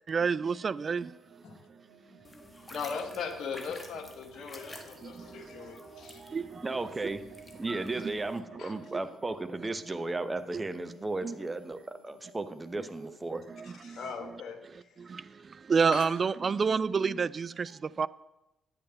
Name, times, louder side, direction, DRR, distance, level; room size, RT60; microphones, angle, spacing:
voice 1, 0.1-1.1 4.7-5.7 6.2-6.6 11.2-11.3 13.3-14.0 15.0-18.1, right 5 dB, 40° right, 16 dB, 0.4 m, -30 dB
sound 1, 0.6-15.3, right 3 dB, 60° right, 4.3 m, -56 dB
sound 2, 2.2-8.4, left 1 dB, 15° left, 1.7 m, -51 dB
voice 2, 2.7-6.2 8.6-8.7 13.6-14.9 15.9-16.1, left 5 dB, 55° left, 5 dB, 1.6 m, -39 dB
voice 3, 6.6-7.2 7.6-13.4, right 2 dB, 20° right, 10 dB, 1.0 m, -35 dB
10.5 x 8.6 x 5.7 m, 0.91 s
figure-of-eight pair, 40°, 0 cm